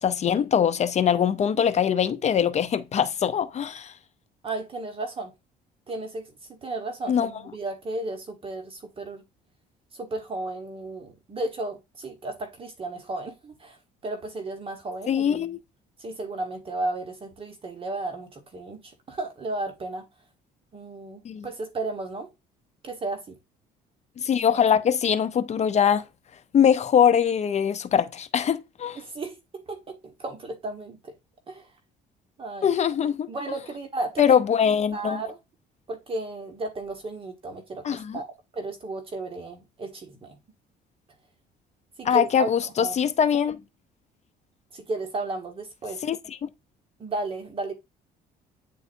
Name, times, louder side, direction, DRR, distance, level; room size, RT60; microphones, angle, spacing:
voice 1, 0.0-3.9 7.1-7.4 15.1-15.6 21.2-21.5 24.2-26.0 26.5-29.0 32.6-33.3 34.2-35.2 37.8-38.2 42.0-43.6 46.0-46.5, left 8 dB, 40° left, 0.7 m, -22 dB
voice 2, 4.4-5.3 5.9-6.3 6.6-9.2 10.0-13.8 14.0-15.6 16.0-18.8 19.1-20.0 20.7-22.3 22.8-23.4 29.0-29.4 29.7-31.1 31.5-31.6 32.4-32.7 33.3-34.4 34.9-35.4 35.9-38.3 38.5-40.4 42.0-42.5 42.8-43.0 44.7-46.0 47.0-47.7, right 2 dB, 35° right, 1.4 m, -34 dB
9.2 x 4.0 x 2.6 m
cardioid pair, 110°, 17 cm